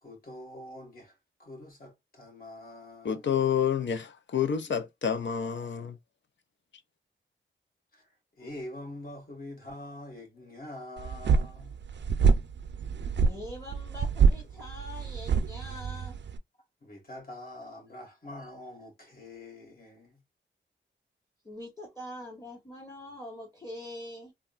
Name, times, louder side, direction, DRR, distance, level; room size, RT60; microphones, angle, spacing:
voice 1, 0.0-3.3 7.9-11.8 16.8-20.2, left 1 dB, 45° left, 1.9 m, -45 dB
voice 2, 3.0-6.0, left 8 dB, 60° left, 0.6 m, -29 dB
sound 1, 11.0-16.4, right 5 dB, 60° right, 0.5 m, -26 dB
voice 3, 13.2-16.2 21.4-24.3, left 1 dB, 15° left, 1.2 m, -43 dB
3.4 x 2.2 x 2.4 m
cardioid pair, 75°, 21 cm